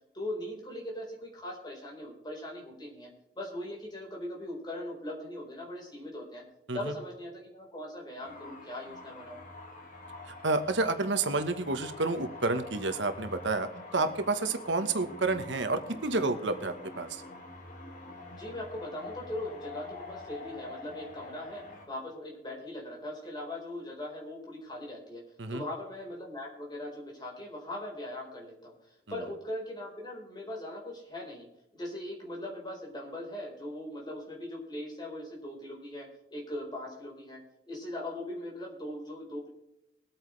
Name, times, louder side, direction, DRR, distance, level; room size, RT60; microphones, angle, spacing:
voice 1, 0.1-3.1 3.3-6.4 6.7-9.4 18.3-25.2 25.5-31.5 31.7-37.4 37.7-39.5, left 1 dB, 25° left, -2 dB, 4.5 m, -40 dB
sound 1, 8.2-21.9, left 2 dB, 45° left, 3.0 m, -46 dB
voice 2, 10.2-17.2 25.4-25.6 29.1-29.2, right 3 dB, 85° right, 8 dB, 1.3 m, -30 dB
22.0 x 9.0 x 3.3 m, 0.89 s
head